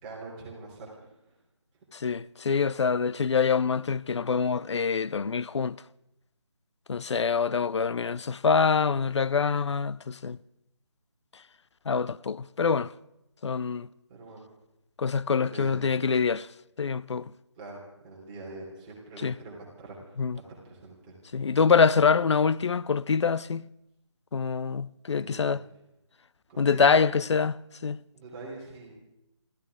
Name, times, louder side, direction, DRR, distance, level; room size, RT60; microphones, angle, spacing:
voice 1, 0.0-1.3 14.1-14.4 15.3-15.8 17.6-20.0 20.3-21.6 21.9-22.1 25.1-25.6 26.5-27.0 28.1-28.9, right 3 dB, 15° right, 3.4 m, -44 dB
voice 2, 1.9-5.8 6.9-10.4 11.9-12.9 13.4-13.9 15.0-16.5 16.8-17.3 19.2-19.4 20.2-20.4 21.3-23.6 24.3-25.6 26.6-27.6 27.8-28.0, left 5 dB, 65° left, 0.5 m, -25 dB
27.0 x 15.0 x 3.6 m
figure-of-eight pair, 160°, 15 cm